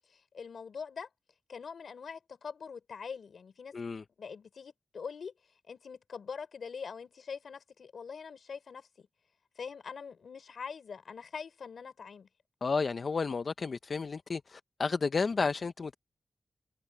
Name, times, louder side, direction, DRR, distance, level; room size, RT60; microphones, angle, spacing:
voice 1, 0.1-1.1 1.5-3.7 4.2-5.3 5.7-9.1 9.6-12.3, left 6 dB, 80° left, 3.8 m, -43 dB
voice 2, 3.7-4.0 12.6-15.9, left 4 dB, 50° left, 0.5 m, -32 dB
wide cardioid pair, 120°, 0 cm